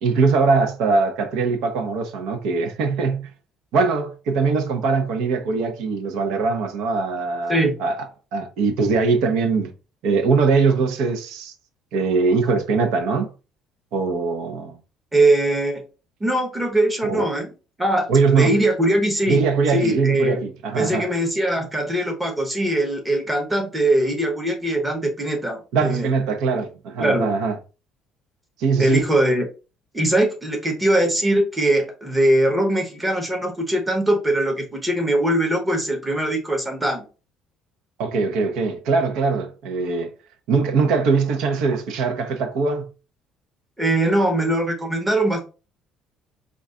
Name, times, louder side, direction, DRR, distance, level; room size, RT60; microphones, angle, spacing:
voice 1, 0.0-3.3 3.7-8.1 8.3-9.7 10.0-11.5 11.9-13.3 13.9-14.8 17.0-17.3 18.1-18.6 19.3-21.1 25.7-27.6 28.6-29.0 38.0-40.1 40.5-42.9, right 4 dB, 70° right, 0.7 m, -21 dB
voice 2, 15.1-15.8 16.2-17.5 17.8-19.4 19.7-20.4 20.7-26.1 27.0-27.3 28.8-29.5 29.9-37.1 43.8-45.4, right 1 dB, 10° right, 0.8 m, -21 dB
3.8 x 2.3 x 3.7 m
cardioid pair, 160°, 0 cm